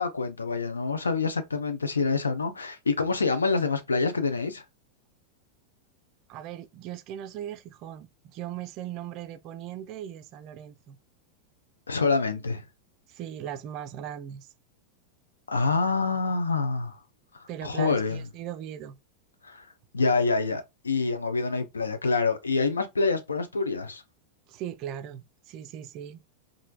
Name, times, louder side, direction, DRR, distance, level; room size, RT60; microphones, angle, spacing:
voice 1, 0.0-4.6 11.9-12.6 15.5-17.0 17.6-18.2 19.4-19.6 19.9-24.0, left 4 dB, 75° left, 0.5 m, -26 dB
voice 2, 6.3-11.0 13.1-14.5 17.5-19.0 24.5-26.2, right 10 dB, 40° right, 0.3 m, -39 dB
3.1 x 2.5 x 2.2 m
figure-of-eight pair, 90°, 0 cm